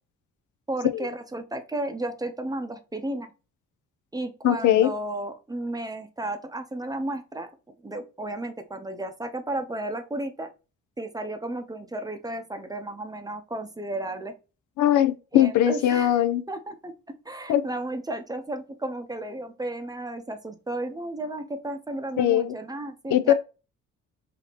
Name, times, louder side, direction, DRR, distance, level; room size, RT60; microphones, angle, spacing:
voice 1, 0.7-3.3 4.1-7.5 7.8-10.5 11.0-14.3 15.3-16.1 16.5-16.9 17.2-23.3, right 1 dB, 10° right, 0.7 m, -33 dB
voice 2, 4.4-4.9 14.8-16.4 17.5-17.6 22.2-22.6 23.1-23.3, left 12 dB, 75° left, 0.5 m, -20 dB
4.2 x 2.8 x 2.9 m
cardioid pair, 90°, 30 cm